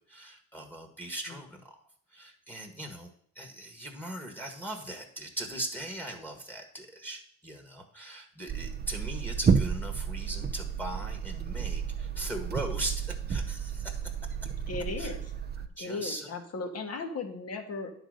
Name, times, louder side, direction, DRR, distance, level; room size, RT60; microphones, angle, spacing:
voice 1, 0.0-1.8 2.1-3.1 3.3-14.0 14.4-14.5 15.0-15.1 15.8-16.3, right 1 dB, 5° left, 2 dB, 1.5 m, -39 dB
sound 1, 8.5-15.7, right 6 dB, 35° right, 0.7 m, -31 dB
voice 2, 14.7-15.3 15.8-17.9, left 3 dB, 55° left, 4 dB, 1.6 m, -36 dB
9.7 x 3.9 x 6.4 m, 0.63 s
cardioid pair, 90°, 30 cm